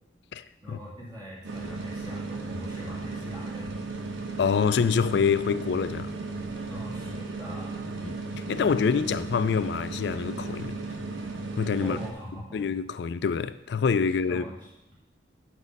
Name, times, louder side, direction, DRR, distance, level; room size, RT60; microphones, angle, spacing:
voice 1, 0.6-3.7 6.7-8.0 11.8-12.6 14.1-14.9, equal, 20° right, 2.3 m, -43 dB
sound 1, 1.4-12.1, right 3 dB, 90° right, 0.9 m, -35 dB
voice 2, 4.4-6.1 8.0-8.2 8.5-10.8 11.6-12.0 12.5-14.4, left 6 dB, 65° left, 0.3 m, -26 dB
6.3 x 6.2 x 5.3 m
head